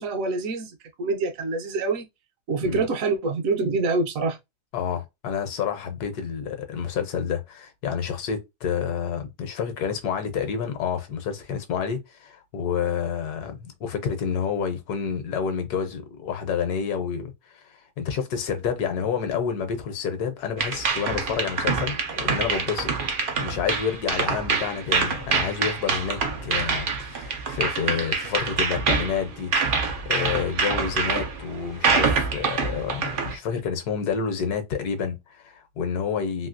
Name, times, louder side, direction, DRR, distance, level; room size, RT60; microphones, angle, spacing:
voice 1, 0.0-2.0 2.5-4.4, right 3 dB, 65° right, 0.9 m, -26 dB
voice 2, 4.7-22.9 23.4-29.8 30.1-36.5, left 7 dB, 75° left, 1.2 m, -29 dB
sound 1, 20.6-33.4, right 5 dB, 90° right, 0.4 m, -26 dB
3.0 x 2.7 x 2.5 m
omnidirectional pair, 1.7 m